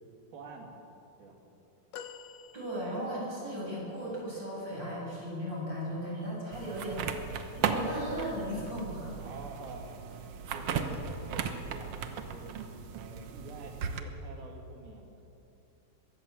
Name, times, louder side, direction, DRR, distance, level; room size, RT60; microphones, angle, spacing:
voice 1, 0.3-0.7 1.2-1.4 9.2-9.9 10.5-12.5 12.9-15.3, right 3 dB, 70° right, 2 dB, 4.3 m, -47 dB
sound 1, 1.9-3.3 4.1-4.2, left 7 dB, 70° left, 2.2 m, -47 dB
voice 2, 2.5-9.2, equal, 25° right, -4 dB, 7.5 m, -36 dB
sound 2, 6.5-14.0, right 6 dB, 90° right, 1.3 m, -36 dB
22.0 x 16.5 x 7.8 m, 2.8 s
omnidirectional pair, 4.4 m